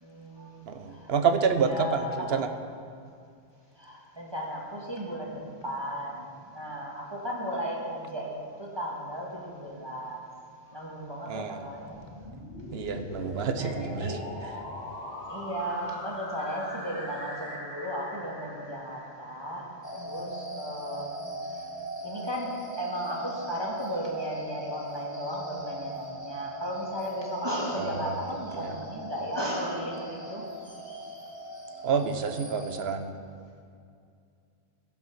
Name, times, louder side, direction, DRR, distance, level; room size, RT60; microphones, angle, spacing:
voice 1, 0.0-1.1 1.6-2.4 3.8-10.2 10.7-12.0 13.5-14.2 15.3-19.7 20.0-21.2 22.0-30.4, equal, 25° right, -3 dB, 1.6 m, -35 dB
voice 2, 0.7-2.5 11.3-11.7 12.7-14.2 27.8-28.8 31.8-33.2, right 6 dB, 75° right, 8 dB, 1.0 m, -29 dB
sound 1, 11.8-19.7, left 1 dB, 90° left, 1.7 m, -41 dB
sound 2, 19.8-32.8, equal, 20° left, 1.5 m, -40 dB
15.0 x 5.8 x 5.9 m, 2.3 s
omnidirectional pair, 1.1 m